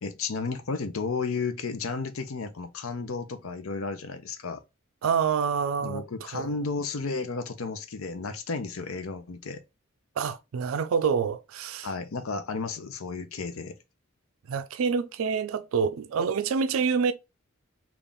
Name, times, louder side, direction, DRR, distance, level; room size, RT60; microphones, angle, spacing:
voice 1, 0.0-4.6 5.8-9.6 11.8-13.7, left 4 dB, 85° left, 0.6 m, -33 dB
voice 2, 5.0-6.0 6.3-6.6 10.2-11.9 14.5-17.1, right 6 dB, 75° right, 0.4 m, -27 dB
3.5 x 2.4 x 3.8 m
head